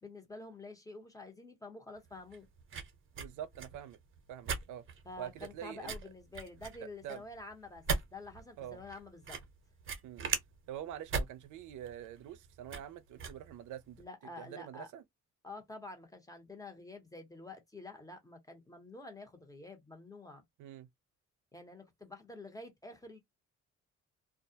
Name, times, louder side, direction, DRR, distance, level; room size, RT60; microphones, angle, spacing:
voice 1, 0.0-2.5 5.0-7.8 8.1-9.4 14.0-14.9 15.4-20.4 21.5-23.2, left 2 dB, 10° left, 0.9 m, -48 dB
sound 1, 2.0-14.0, right 5 dB, 40° right, 0.8 m, -41 dB
voice 2, 3.2-4.0 4.3-4.8 5.2-5.9 7.0-7.2 8.6-8.8 10.0-10.3 10.7-14.0 14.4-15.0 20.6-20.9, right 10 dB, 80° right, 0.5 m, -45 dB
2.3 x 2.1 x 2.6 m
cardioid pair, 90°, 30 cm